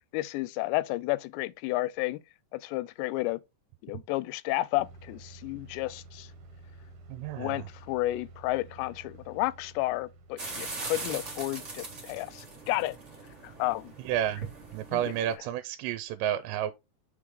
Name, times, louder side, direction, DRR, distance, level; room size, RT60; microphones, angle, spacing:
voice 1, 0.1-2.2 2.5-3.4 3.8-6.3 7.4-13.0 13.4-13.9 14.9-15.0, left 18 dB, 85° left, 2.8 m, -31 dB
sound 1, 4.8-11.3, right 2 dB, 70° right, 2.8 m, -51 dB
voice 2, 7.1-7.7 14.0-14.5 14.7-16.7, right 11 dB, 85° right, 2.8 m, -31 dB
sound 2, 10.4-15.4, right 3 dB, 50° right, 0.8 m, -41 dB
6.6 x 3.6 x 4.8 m
omnidirectional pair, 5.0 m